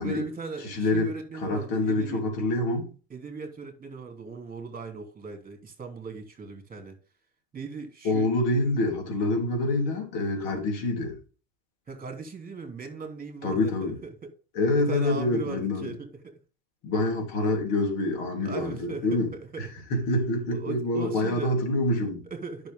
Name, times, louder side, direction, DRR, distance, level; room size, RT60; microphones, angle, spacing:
voice 1, 0.0-2.2 3.1-7.0 7.5-8.3 11.9-14.1 14.9-16.4 18.4-19.7 20.5-21.6 22.0-22.7, right 4 dB, 20° right, 2.9 m, -38 dB
voice 2, 0.6-2.9 8.0-11.2 13.4-14.0 14.5-15.9 16.8-19.3 19.6-22.2, left 2 dB, 70° left, 3.7 m, -26 dB
10.5 x 6.3 x 3.7 m
supercardioid pair, 110°, 42 cm